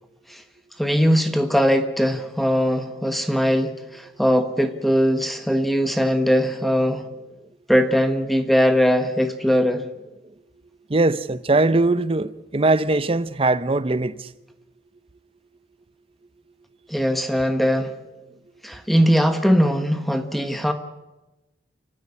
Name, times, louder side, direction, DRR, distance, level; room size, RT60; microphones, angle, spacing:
voice 1, 0.8-7.0 7.7-9.9 16.9-17.9 18.6-20.7, equal, ahead, 1.3 m, -20 dB
voice 2, 10.9-14.3, right 2 dB, 30° right, 0.8 m, -21 dB
29.5 x 12.5 x 9.8 m
head